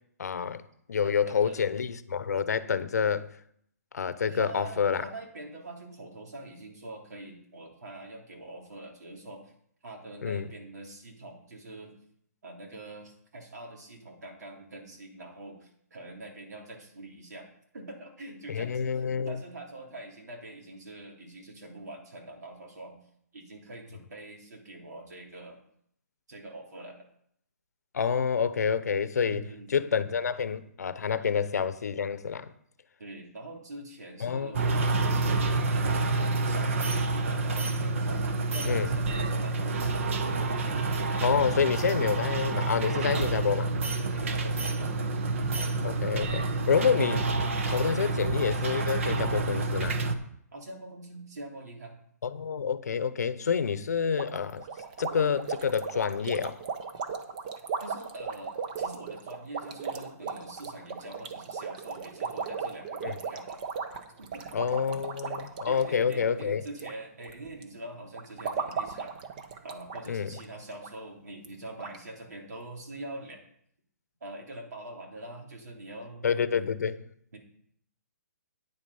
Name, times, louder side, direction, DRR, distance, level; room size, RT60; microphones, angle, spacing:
voice 1, 0.2-0.6 0.9-3.3 3.9-5.0 10.2-10.5 18.5-19.4 27.9-32.5 34.2-34.5 38.7-38.9 41.2-43.7 45.8-47.3 47.7-50.0 52.2-54.6 55.0-56.6 63.0-63.1 64.5-66.6 70.1-70.3 76.2-77.0, left 6 dB, 70° left, 0.8 m, -28 dB
voice 2, 1.0-1.6 4.2-9.5 9.8-11.9 12.4-17.5 17.7-23.0 23.3-25.6 26.3-27.1 29.2-29.9 33.0-34.9 35.6-40.0 44.0-45.3 48.0-48.3 50.5-52.0 57.8-63.6 64.2-65.0 65.3-65.4 65.6-69.1 69.6-73.4 74.2-76.3 77.3-77.4, right 2 dB, 75° right, 3.4 m, -44 dB
sound 1, 34.5-50.1, right 3 dB, 50° right, 1.1 m, -28 dB
sound 2, 54.2-66.9 67.2-67.6 68.1-70.1 70.3-70.4 70.8-70.9 71.4-71.5 71.8-72.0, right 6 dB, 30° right, 0.9 m, -36 dB
9.4 x 7.4 x 5.5 m
hypercardioid pair, 165°, 9 cm